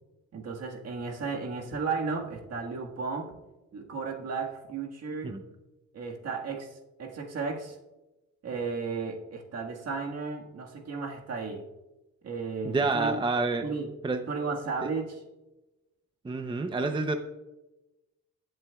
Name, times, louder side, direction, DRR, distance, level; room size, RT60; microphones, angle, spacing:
voice 1, 0.3-3.3 3.7-5.3 5.9-7.8 8.4-11.7 12.2-13.2 13.6-13.9 14.3-15.2, right 4 dB, 55° right, 1 dB, 1.7 m, -34 dB
voice 2, 12.6-13.6 14.0-14.2 14.8-14.9 16.2-17.1, right 3 dB, 15° right, 7 dB, 0.7 m, -28 dB
19.5 x 7.6 x 2.3 m, 1.0 s
cardioid pair, 90°, 30 cm